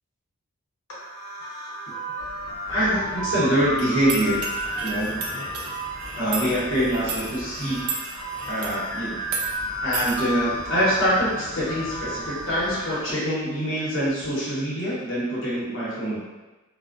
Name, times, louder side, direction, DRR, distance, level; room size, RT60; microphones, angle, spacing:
sound 1, 0.9-13.0, right 1 dB, 90° left, 0.8 m, -33 dB
sound 2, 2.2-13.6 14.0-14.6, equal, 15° right, 0.6 m, -43 dB
voice 1, 2.7-4.4 4.8-5.2 6.1-7.9 8.5-9.2 9.8-16.2, equal, 60° left, -8 dB, 0.8 m, -25 dB
sound 3, 3.8-8.8 9.2-9.5 9.9-10.2, right 4 dB, 80° right, 0.5 m, -34 dB
2.5 x 2.1 x 2.4 m, 1.1 s
head